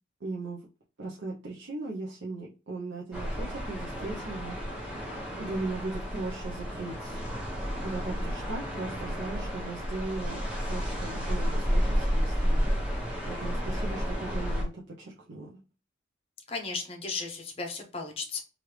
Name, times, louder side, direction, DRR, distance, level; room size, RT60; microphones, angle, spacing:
voice 1, 0.2-0.7 1.0-5.0 5.4-7.2 7.8-15.6, right 3 dB, 65° right, -4 dB, 0.6 m, -38 dB
sound 1, 3.1-14.6, equal, 5° right, 0.8 m, -31 dB
voice 2, 16.5-18.4, left 4 dB, 30° left, 3 dB, 0.7 m, -35 dB
3.1 x 2.4 x 3.1 m, 0.33 s
head